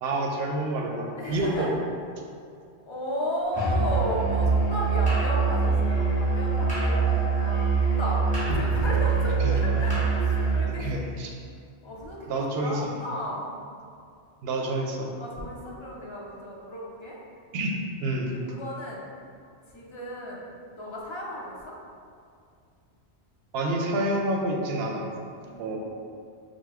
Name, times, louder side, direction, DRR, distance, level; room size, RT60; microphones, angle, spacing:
voice 1, 0.0-1.7 9.4-9.5 10.8-11.3 12.3-12.9 14.4-15.1 17.5-17.7 18.0-18.3 23.5-25.1 25.6-25.8, right 2 dB, 70° right, 1 dB, 0.8 m, -28 dB
voice 2, 1.2-1.8 2.9-11.0 11.8-13.6 15.2-17.2 18.3-19.0 19.7-20.5 20.8-21.8 25.4-25.8, equal, 40° left, -3 dB, 0.4 m, -34 dB
Musical instrument, 3.5-10.7, right 4 dB, 5° left, 1.1 m, -24 dB
4.8 x 2.1 x 3.4 m, 2.3 s
omnidirectional pair, 1.1 m